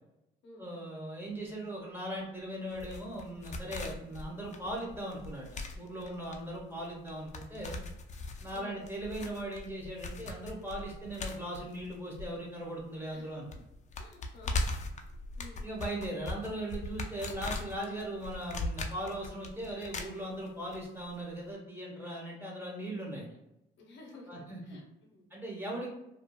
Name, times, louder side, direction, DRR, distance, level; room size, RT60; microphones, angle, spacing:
voice 1, 0.6-5.5 5.7-7.8 8.4-13.5 15.6-23.3 24.3-24.6 25.3-25.9, right 1 dB, 10° right, -3 dB, 0.9 m, -39 dB
sound 1, 2.7-12.8 13.1-13.2 13.5-20.8 21.0-21.1, left 2 dB, 35° left, 0.4 m, -39 dB
voice 2, 8.5-8.8 13.1-13.4 14.0-14.6 15.4-15.7 23.8-25.2, left 2 dB, 70° left, -1 dB, 0.7 m, -52 dB
2.7 x 2.3 x 2.2 m, 0.87 s
cardioid pair, 90°, 20 cm